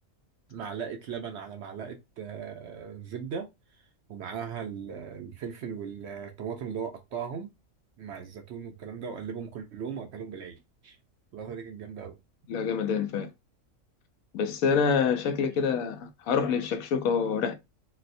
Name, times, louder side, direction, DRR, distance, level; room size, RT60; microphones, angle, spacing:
voice 1, 0.5-3.5 4.1-7.5 8.0-11.0 11.3-12.2, right 7 dB, 65° right, 0.7 m, -38 dB
voice 2, 12.5-13.3 14.3-17.5, left 6 dB, 80° left, 1.0 m, -26 dB
4.0 x 2.1 x 2.5 m
omnidirectional pair, 1.5 m